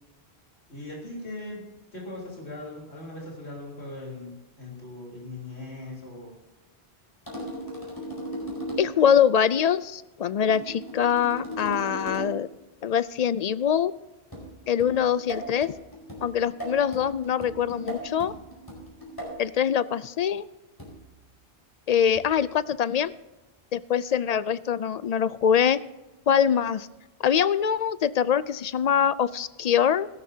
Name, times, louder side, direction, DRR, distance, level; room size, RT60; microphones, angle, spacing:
voice 1, 0.7-1.6 1.9-6.3, left 2 dB, 85° left, -3 dB, 4.0 m, -39 dB
sound 1, 7.3-9.1 10.5-12.5 14.3-19.5 20.8-21.2 22.2-22.5, right 1 dB, 20° left, 4.8 m, -37 dB
voice 2, 8.8-12.5 12.8-13.9 14.7-15.7 16.2-18.3 19.4-20.4 21.9-23.1 23.7-25.8 26.3-26.9 27.2-30.1, left 8 dB, 55° left, 16 dB, 0.4 m, -23 dB
16.5 x 13.5 x 2.8 m, 1.1 s
omnidirectional pair, 1.1 m